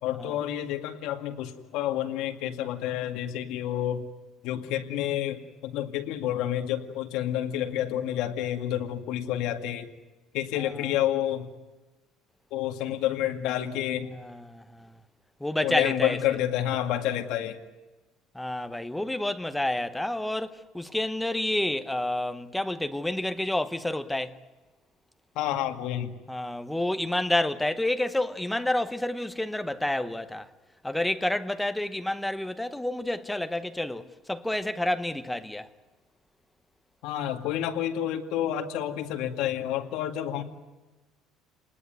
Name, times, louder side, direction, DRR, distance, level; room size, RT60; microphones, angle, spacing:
voice 1, 0.0-4.1 4.4-9.9 10.3-11.5 12.5-14.1 15.6-17.6 25.4-26.1 37.0-40.4, left 11 dB, 65° left, 2.2 m, -29 dB
voice 2, 10.6-10.9 14.1-14.9 15.4-16.2 18.3-24.4 26.3-30.5 30.8-35.7, left 1 dB, 5° left, 0.9 m, -29 dB
28.0 x 20.0 x 9.4 m
cardioid pair, 170°, 0 cm